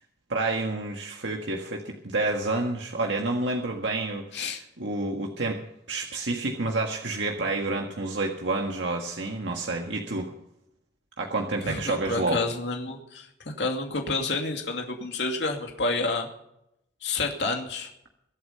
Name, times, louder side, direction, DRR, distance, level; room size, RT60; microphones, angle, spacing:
voice 1, 0.3-5.6 5.9-10.3 11.2-12.4, right 2 dB, 90° right, 2 dB, 1.7 m, -29 dB
voice 2, 11.6-13.3 13.6-16.3 17.0-17.9, left 3 dB, 80° left, 2 dB, 2.5 m, -29 dB
23.0 x 8.4 x 5.7 m, 0.80 s
head